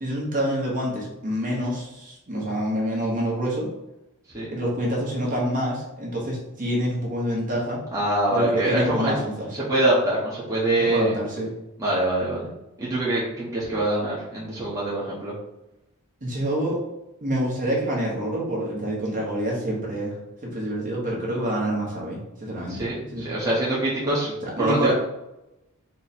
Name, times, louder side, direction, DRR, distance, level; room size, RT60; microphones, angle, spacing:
voice 1, 0.0-3.7 4.5-7.8 8.3-9.5 10.9-11.5 16.2-16.8 17.2-20.1 20.4-23.4 24.6-24.9, equal, 40° right, -3 dB, 1.1 m, -27 dB
voice 2, 7.9-9.1 9.5-11.1 11.8-12.5 12.8-15.3 22.7-24.9, right 1 dB, 15° right, -8 dB, 0.9 m, -24 dB
4.3 x 2.2 x 4.2 m, 0.92 s
head